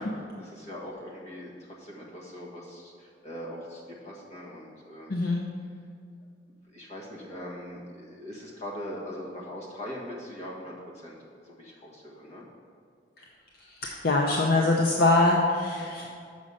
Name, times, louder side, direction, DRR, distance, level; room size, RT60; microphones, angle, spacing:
voice 1, 0.0-5.2 6.7-11.2 11.4-12.4, equal, 40° left, -3 dB, 1.6 m, -41 dB
voice 2, 5.1-5.5 13.8-16.1, left 2 dB, 60° left, -1 dB, 0.6 m, -23 dB
6.3 x 5.4 x 6.4 m, 2.2 s
head